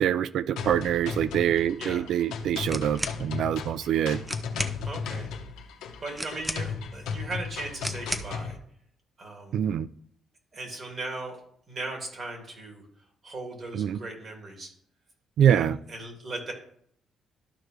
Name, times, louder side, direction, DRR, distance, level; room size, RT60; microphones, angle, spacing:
voice 1, 0.0-4.2 9.5-9.9 13.7-14.0 15.4-15.8, right 9 dB, 75° right, 0.3 m, -25 dB
sound 1, 0.6-8.6, left 6 dB, 90° left, 0.8 m, -36 dB
sound 2, 2.6-3.2 3.9-4.0 4.2-4.8 6.2-6.9 7.8-8.4, right 1 dB, 10° right, 0.7 m, -34 dB
voice 2, 4.8-5.3 6.0-8.6 9.2-9.6 10.5-11.4 11.7-12.9 13.2-14.7 15.5-16.5, right 2 dB, 45° right, 2.6 m, -38 dB
13.0 x 4.7 x 3.3 m
cardioid pair, 90°, 0 cm